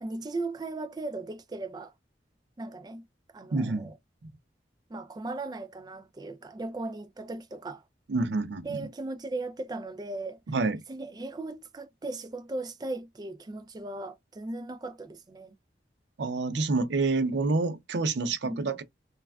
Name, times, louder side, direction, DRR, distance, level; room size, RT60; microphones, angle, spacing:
voice 1, 0.0-1.9 2.6-3.0 3.3-3.9 4.9-7.8 8.6-10.4 10.9-15.5 18.4-18.8, right 2 dB, 25° right, 0.3 m, -37 dB
voice 2, 3.5-3.9 8.1-8.8 10.5-10.8 16.2-18.8, right 3 dB, 75° right, 0.5 m, -28 dB
3.2 x 2.3 x 2.2 m
head